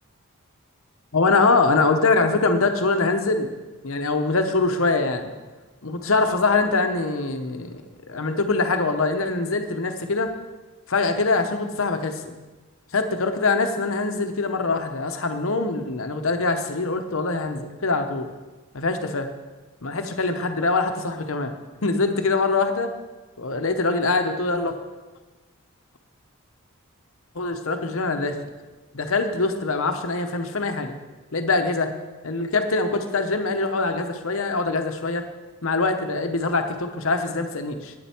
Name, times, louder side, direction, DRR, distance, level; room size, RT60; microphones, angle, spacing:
voice 1, 1.1-5.3 5.8-7.8 8.1-10.3 10.9-12.4 12.9-18.3 18.7-19.3 19.8-21.5 21.8-22.9 23.4-24.7 27.3-28.5 28.9-30.9 31.3-31.9 32.2-35.2 35.6-37.9, left 3 dB, 65° left, 6 dB, 1.0 m, -23 dB
10.5 x 9.6 x 4.5 m, 1.2 s
head